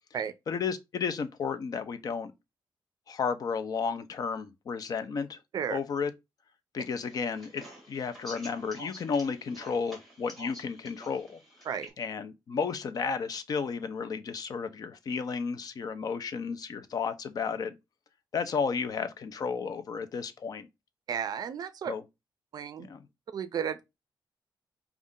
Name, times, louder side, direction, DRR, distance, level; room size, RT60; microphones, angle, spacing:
voice 1, 0.5-2.3 3.1-5.4 5.7-6.1 6.7-11.4 12.0-17.7 18.3-20.7 21.9-22.0 22.8-23.1, left 5 dB, 50° left, 0.5 m, -33 dB
sound 1, 6.8-11.9, equal, ahead, 1.7 m, -49 dB
voice 2, 21.1-21.9 22.5-22.9 23.3-23.8, right 8 dB, 55° right, 0.4 m, -33 dB
5.2 x 2.4 x 3.7 m
wide cardioid pair, 180°, 8 cm